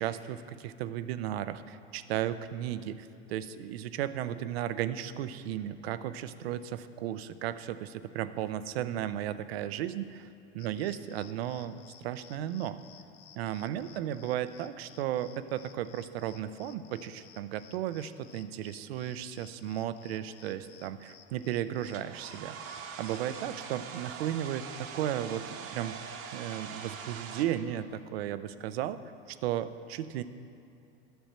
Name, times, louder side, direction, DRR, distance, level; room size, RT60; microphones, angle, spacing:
voice 1, 0.0-10.3 10.5-11.8 12.0-12.8 13.4-22.6 23.0-29.0 29.3-30.2, right 11 dB, 80° right, 13 dB, 0.5 m, -35 dB
sound 1, 10.6-23.4, left 9 dB, 50° left, 0.6 m, -57 dB
Domestic sounds home sounds, 21.9-27.5, right 6 dB, 50° right, 0.9 m, -43 dB
10.5 x 7.2 x 4.3 m, 2.7 s
hypercardioid pair, 85°, 30 cm